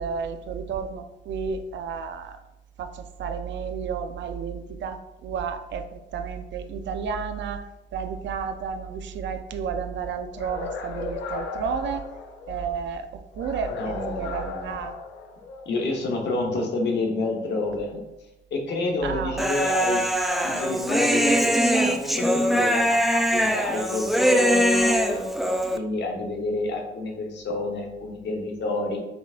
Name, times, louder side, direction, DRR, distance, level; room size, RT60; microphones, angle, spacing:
voice 1, 0.0-2.4 2.8-7.6 7.9-12.0 12.5-14.9 19.0-19.4, right 6 dB, 65° right, 8 dB, 0.5 m, -32 dB
sound 1, 10.3-12.7 13.3-15.8, left 4 dB, 90° left, 0.6 m, -36 dB
voice 2, 13.7-14.8 15.6-18.0 18.5-20.1 20.4-25.3 25.7-29.0, left 2 dB, 60° left, 1 dB, 1.1 m, -29 dB
Human voice, 19.4-25.8, equal, ahead, 0.4 m, -22 dB
5.2 x 3.4 x 2.5 m, 0.91 s
cardioid pair, 90°, 20 cm